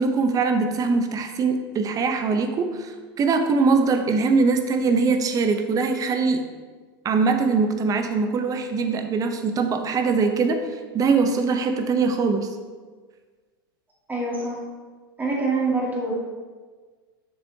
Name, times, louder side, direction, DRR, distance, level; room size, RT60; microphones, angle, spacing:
voice 1, 0.0-6.4 7.0-10.6 10.9-12.5, right 4 dB, 30° right, 7 dB, 0.7 m, -22 dB
voice 2, 14.1-14.7 15.2-16.1, right 3 dB, 15° right, -3 dB, 1.9 m, -25 dB
7.1 x 6.0 x 2.8 m, 1.4 s
hypercardioid pair, 90°, 12 cm